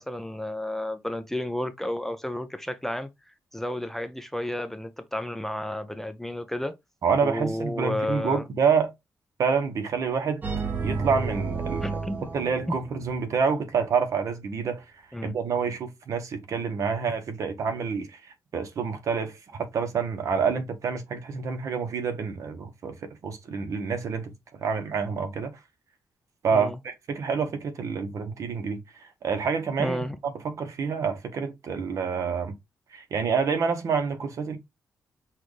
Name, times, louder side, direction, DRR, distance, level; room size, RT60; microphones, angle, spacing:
voice 1, 0.0-3.1 3.5-6.7 7.2-8.5 11.8-12.2 12.7-12.8 15.1-15.3 26.5-26.8 29.8-30.2, left 1 dB, 5° left, 0.4 m, -31 dB
voice 2, 7.0-8.9 9.4-10.4 10.8-11.8 12.3-14.8 15.2-18.1 18.5-25.5 26.4-30.0 30.4-32.5 32.9-34.6, right 5 dB, 60° right, 1.0 m, -27 dB
sound 1, 10.4-13.4, right 4 dB, 35° right, 1.1 m, -31 dB
6.0 x 2.4 x 3.2 m
wide cardioid pair, 155°, 6 cm